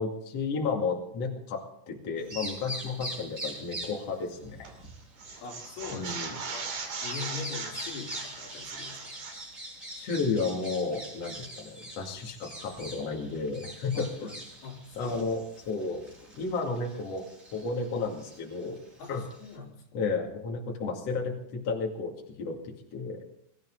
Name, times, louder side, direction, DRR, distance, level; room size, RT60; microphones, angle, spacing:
voice 1, 0.0-4.7 5.9-6.3 9.9-14.3 15.0-15.4 15.7-16.0 16.4-17.2 17.5-18.8 19.1-19.2 19.9-22.1 22.4-22.6 22.9-23.2, left 4 dB, 45° left, 0 dB, 3.1 m, -32 dB
Bird vocalization bird call bird song, 2.2-19.6, right 1 dB, 20° right, 5.5 m, -44 dB
sound 1, 4.6-4.9 5.2-9.4, right 4 dB, 55° right, 3.7 m, -38 dB
voice 2, 5.4-6.1 6.5-6.7 7.0-9.3 13.9-14.3 14.6-15.4 19.0-19.8, left 5 dB, 85° left, 0 dB, 4.7 m, -42 dB
23.0 x 13.5 x 3.8 m, 0.71 s
omnidirectional pair, 4.3 m